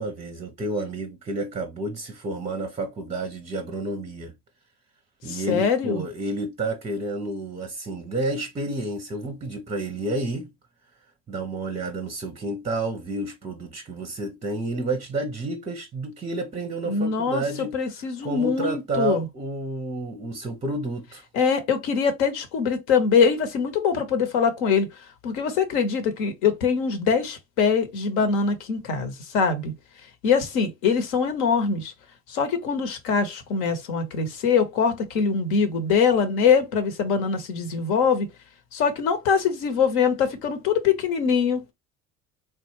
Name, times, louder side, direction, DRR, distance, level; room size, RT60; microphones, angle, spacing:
voice 1, 0.0-4.3 5.2-10.5 11.3-17.8 18.2-21.3, right 2 dB, 15° right, 0.6 m, -30 dB
voice 2, 5.3-6.0 16.9-19.3 21.3-24.9 25.2-29.7 30.2-31.9 32.3-38.3 38.7-41.6, left 6 dB, 70° left, 1.0 m, -23 dB
3.3 x 2.2 x 3.1 m
hypercardioid pair, 70°, 45 cm